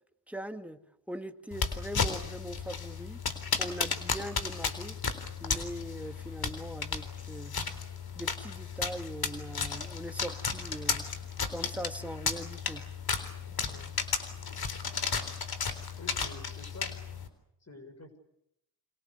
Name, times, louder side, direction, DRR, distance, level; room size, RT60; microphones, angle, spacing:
voice 1, 0.3-0.8 1.1-3.2 3.6-5.0 5.4-7.7 8.2-11.0 11.5-12.8, equal, 5° right, 6 dB, 2.3 m, -41 dB
sound 1, 1.5-17.3, left 5 dB, 55° left, 4.0 m, -34 dB
voice 2, 13.5-14.0 16.0-16.9 17.6-18.2, left 2 dB, 35° left, 7 dB, 6.8 m, -49 dB
28.5 x 26.0 x 6.9 m, 0.80 s
cardioid pair, 65°, 42 cm